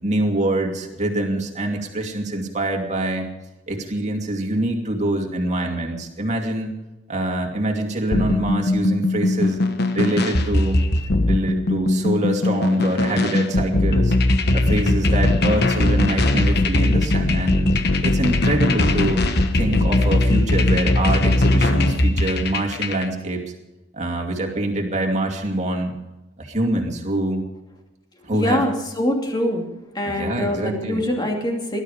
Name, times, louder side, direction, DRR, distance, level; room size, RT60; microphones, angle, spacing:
voice 1, 0.0-3.3 3.7-6.7 7.1-9.6 9.9-10.8 11.2-14.2 14.5-17.7 18.0-19.2 19.5-23.4 23.9-25.9 26.4-27.4 28.2-28.6 30.0-31.1, right 1 dB, 35° right, 2 dB, 2.5 m, -25 dB
sound 1, 8.1-23.1, left 2 dB, 55° left, 1.2 m, -19 dB
voice 2, 28.3-29.6 29.9-31.8, left 1 dB, 20° left, 1 dB, 2.5 m, -24 dB
19.5 x 12.0 x 5.1 m, 1.0 s
head